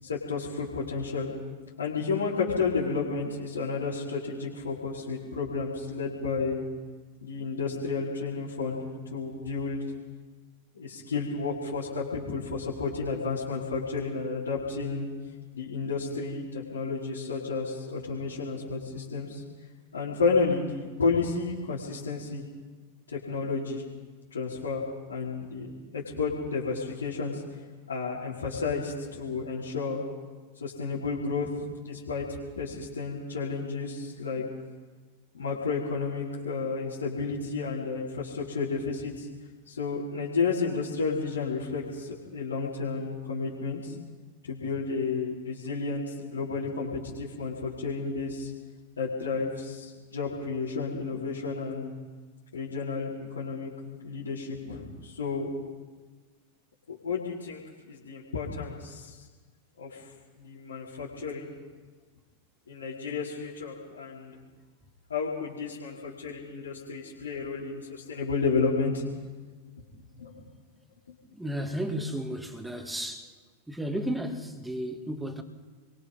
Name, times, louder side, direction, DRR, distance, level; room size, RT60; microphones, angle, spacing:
voice 1, 0.0-1.3 1.8-6.6 7.2-8.9 9.1-9.9 10.7-15.1 15.5-19.4 19.9-22.4 23.1-23.8 24.3-27.4 27.9-30.0 30.6-31.5 31.8-34.4 35.3-39.3 39.6-43.9 44.4-48.5 49.0-51.9 52.5-53.7 54.0-55.5 56.9-57.6 57.9-59.2 59.8-60.0 60.4-61.5 62.7-64.4 65.1-69.0 70.2-70.3, left 4 dB, 70° left, 4.9 m, -31 dB
voice 2, 71.3-73.3 73.7-75.4, equal, 5° right, 2.6 m, -33 dB
29.0 x 23.5 x 5.5 m
figure-of-eight pair, 90°, 0 cm